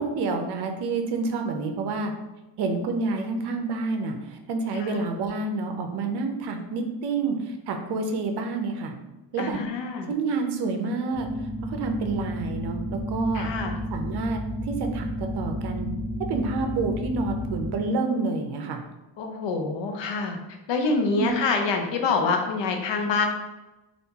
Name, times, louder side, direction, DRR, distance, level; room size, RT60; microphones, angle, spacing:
voice 1, 0.0-2.1 2.6-8.9 9.3-9.6 10.1-11.3 11.7-13.5 13.9-14.4 14.7-15.9 16.3-18.8 21.1-21.3, right 3 dB, 60° right, 5 dB, 0.5 m, -28 dB
voice 2, 9.4-10.1 13.3-13.8 19.2-20.4 20.7-23.3, left 4 dB, 75° left, 4 dB, 0.7 m, -26 dB
sound 1, 11.1-17.8, equal, 40° left, 1.1 m, -32 dB
3.6 x 2.5 x 2.8 m, 1.0 s
cardioid pair, 155°, 44 cm